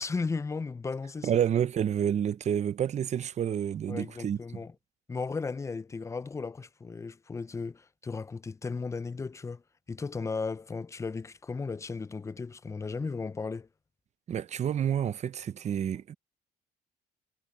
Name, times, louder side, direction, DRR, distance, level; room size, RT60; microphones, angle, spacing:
voice 1, 0.0-1.4 3.9-4.7 5.1-13.7, left 4 dB, 15° left, 0.5 m, -35 dB
voice 2, 1.2-4.4 14.3-16.1, right 9 dB, 40° right, 0.8 m, -29 dB
cardioid pair, 110°, 17 cm